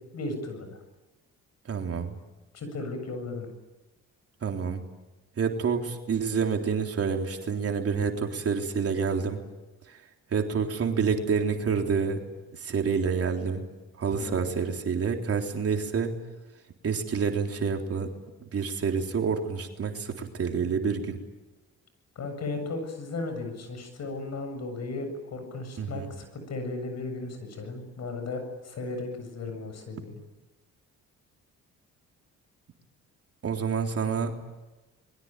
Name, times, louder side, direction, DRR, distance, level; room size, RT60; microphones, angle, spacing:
voice 1, 0.1-0.8 2.5-3.5 14.1-14.4 22.2-30.2, left 3 dB, 60° left, 7 dB, 7.7 m, -35 dB
voice 2, 1.7-2.2 4.4-4.8 5.4-9.4 9.9-10.0 10.3-12.2 12.5-13.6 14.0-16.1 16.8-18.1 18.5-21.2 25.8-26.1 33.4-34.3, right 6 dB, 50° right, 3 dB, 3.7 m, -28 dB
26.5 x 22.5 x 9.1 m, 1.1 s
cardioid pair, 90°, 30 cm